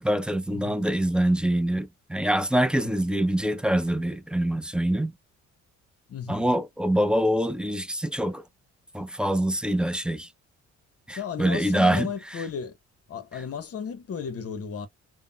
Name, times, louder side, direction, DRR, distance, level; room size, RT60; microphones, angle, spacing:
voice 1, 0.0-5.1 6.3-8.4 8.9-10.3 11.1-12.1, right 1 dB, 5° right, 0.3 m, -25 dB
voice 2, 6.1-6.5 11.2-12.8 13.1-14.9, left 7 dB, 50° left, 0.9 m, -34 dB
3.6 x 2.0 x 2.2 m
cardioid pair, 90°, 30 cm